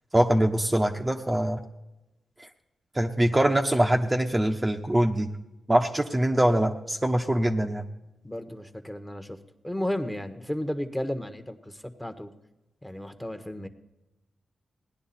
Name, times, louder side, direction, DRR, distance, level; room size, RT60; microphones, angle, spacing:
voice 1, 0.1-1.6 2.4-2.5 2.9-5.3 5.7-7.8, right 1 dB, 20° right, 2 dB, 1.0 m, -23 dB
voice 2, 8.2-9.4 9.6-12.3 12.8-13.7, left 1 dB, 10° left, 8 dB, 1.4 m, -33 dB
17.5 x 10.5 x 4.3 m, 0.97 s
cardioid pair, 55°, 0 cm